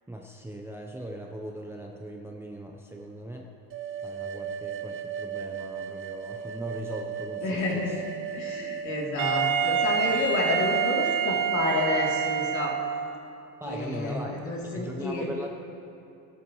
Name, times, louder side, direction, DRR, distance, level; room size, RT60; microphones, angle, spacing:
voice 1, 0.1-3.5 4.0-7.9 13.6-14.3 14.7-15.5, right 1 dB, 5° right, 0 dB, 0.8 m, -39 dB
sound 1, 3.7-11.3, right 7 dB, 30° right, 0.5 m, -37 dB
voice 2, 7.4-8.0 8.3-12.7 13.6-15.3, left 2 dB, 45° left, -3 dB, 3.4 m, -30 dB
Wind instrument woodwind instrument, 9.2-13.1, right 7 dB, 50° right, 1.3 m, -26 dB
20.0 x 12.5 x 3.2 m, 2.7 s
supercardioid pair, 110°, 41 cm